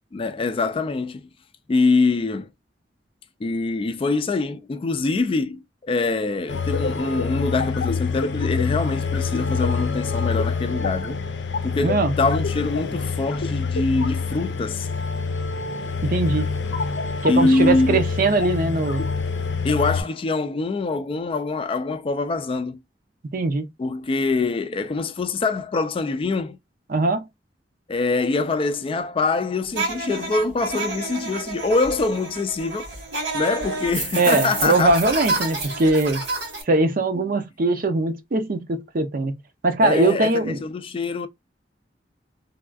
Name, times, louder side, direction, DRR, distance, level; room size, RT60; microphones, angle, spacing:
voice 1, 0.1-1.2 1.7-2.5 3.4-11.2 11.6-14.9 17.3-18.0 19.6-22.8 23.8-26.6 27.9-32.9 33.3-35.0 39.8-41.3, left 3 dB, 30° left, 0.3 m, -24 dB
sound 1, 6.5-20.0, left 4 dB, 90° left, 0.6 m, -26 dB
voice 2, 11.8-12.1 16.0-16.5 17.2-19.1 23.3-23.7 26.9-27.3 34.2-36.2 36.7-39.3 39.6-40.6, right 2 dB, 55° right, 0.5 m, -21 dB
sound 2, 29.7-36.6, right 3 dB, 90° right, 2.0 m, -29 dB
3.4 x 2.4 x 2.3 m
head